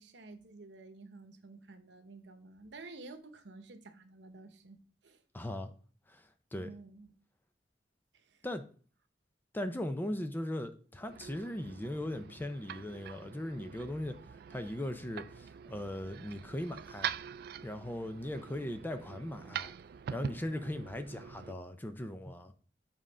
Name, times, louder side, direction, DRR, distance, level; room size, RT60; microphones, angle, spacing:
voice 1, 0.0-5.2 6.5-7.1 8.1-8.4, right 3 dB, 85° right, 0.9 m, -51 dB
voice 2, 5.3-5.7 6.1-6.7 8.4-8.7 9.5-14.2 14.5-17.1 17.6-19.7 20.1-22.5, left 1 dB, 10° left, 0.5 m, -39 dB
sound 1, 11.0-21.5, right 8 dB, 60° right, 0.3 m, -44 dB
7.4 x 3.7 x 5.5 m
head